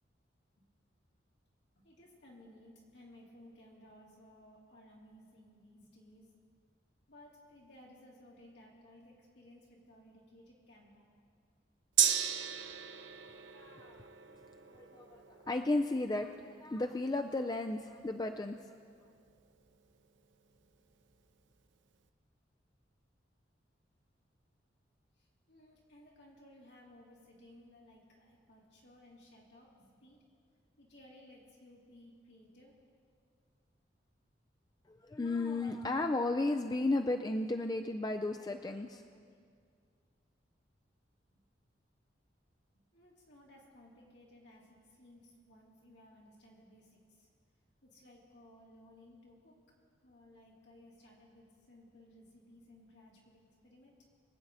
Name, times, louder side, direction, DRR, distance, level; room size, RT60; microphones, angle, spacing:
voice 1, 1.8-6.3 7.1-11.1 25.1-30.2 30.8-32.8 41.3-41.4 42.9-47.3 47.8-49.6 50.0-54.1, left 1 dB, 70° left, -4 dB, 3.1 m, -59 dB
Gong, 12.0-19.7 20.1-20.2, right 9 dB, 80° right, 0.8 m, -37 dB
voice 2, 13.5-14.1 14.8-18.7 34.9-39.0, left 2 dB, 20° left, 6 dB, 0.4 m, -34 dB
24.5 x 8.3 x 4.0 m, 2.2 s
head